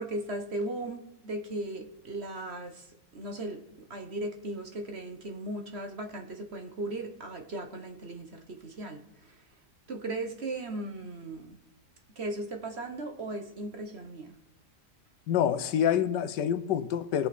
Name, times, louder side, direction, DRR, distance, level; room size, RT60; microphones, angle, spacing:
voice 1, 0.0-2.9 3.1-9.4 9.9-11.6 12.2-14.4, right 2 dB, 40° right, 1.2 m, -37 dB
voice 2, 15.3-17.3, left 9 dB, 85° left, 1.4 m, -27 dB
22.5 x 8.2 x 4.2 m
omnidirectional pair, 1.8 m